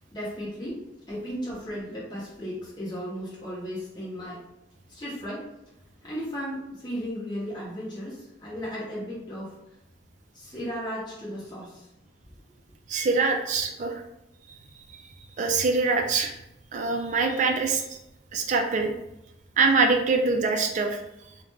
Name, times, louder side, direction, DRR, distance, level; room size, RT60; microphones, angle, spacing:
voice 1, 0.1-4.4 4.9-5.5 6.0-9.6 10.3-11.9, equal, 25° left, -8 dB, 0.8 m, -35 dB
voice 2, 12.9-14.0 14.5-14.6 14.9-15.1 15.4-16.4 16.7-18.0 18.3-18.9 19.6-21.0, right 4 dB, 40° right, 4 dB, 0.3 m, -24 dB
2.4 x 2.1 x 3.2 m, 0.88 s
head